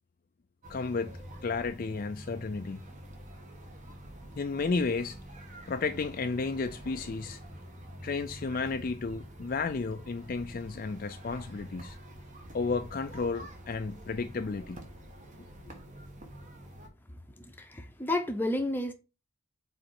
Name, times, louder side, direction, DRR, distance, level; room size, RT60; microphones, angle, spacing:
sound 1, 0.6-16.9, equal, 35° right, 1.3 m, -47 dB
voice 1, 0.7-2.8 4.4-5.2 5.7-7.4 8.0-12.0 12.5-14.8, left 4 dB, 45° left, 0.4 m, -32 dB
voice 2, 17.1-18.9, left 1 dB, 10° left, 0.8 m, -32 dB
5.0 x 4.2 x 4.6 m
head